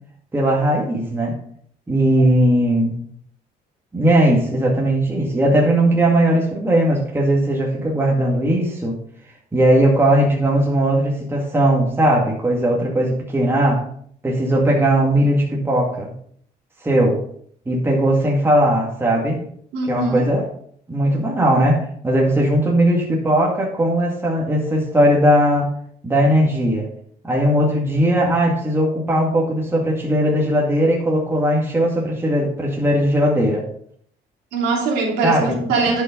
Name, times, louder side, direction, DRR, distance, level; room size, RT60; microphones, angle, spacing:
voice 1, 0.3-1.4 1.9-3.0 3.9-9.0 9.5-13.9 14.2-16.1 16.8-17.2 17.7-19.4 19.9-20.5 20.9-25.7 26.0-26.9 27.2-33.7 35.2-35.7, right 1 dB, 15° right, -2 dB, 2.2 m, -18 dB
voice 2, 19.7-20.3 34.5-36.0, right 3 dB, 85° right, -1 dB, 2.7 m, -21 dB
11.0 x 5.7 x 3.9 m, 0.63 s
cardioid pair, 110°, 17 cm